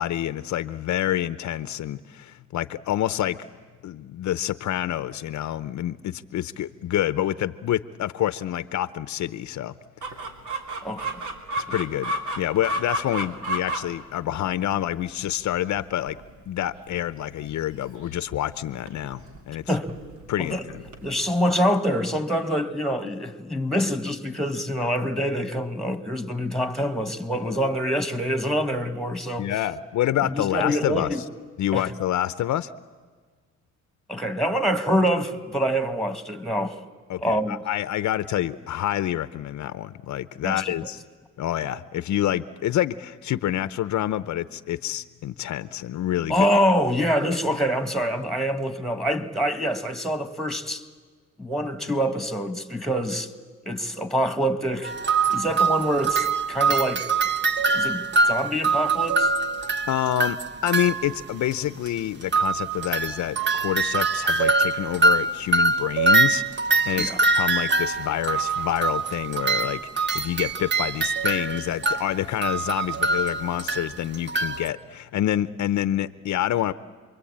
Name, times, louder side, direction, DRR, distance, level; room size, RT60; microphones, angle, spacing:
voice 1, 0.0-3.4 3.8-9.7 11.6-16.2 16.5-19.2 19.5-19.7 20.3-20.8 29.4-31.1 31.6-32.7 37.1-41.0 41.4-46.5 59.9-60.4 60.6-76.7, left 12 dB, 70° left, 0.8 m, -27 dB
Chicken rooster, 10.0-21.1, right 1 dB, 75° right, 3.0 m, -34 dB
voice 2, 10.8-11.2 19.7-19.9 20.4-20.7 21.0-29.5 30.2-31.2 31.7-31.9 34.1-36.8 37.2-37.6 40.4-40.9 46.3-50.8 51.4-53.3 53.7-54.9 55.3-57.1 57.7-59.3 67.0-67.2, equal, ahead, 1.9 m, -25 dB
sound 1, 54.8-61.2 61.5-61.6 61.9-62.0 62.2-74.7, right 3 dB, 35° right, 1.2 m, -24 dB
28.5 x 23.0 x 8.8 m
cardioid pair, 90°, 30 cm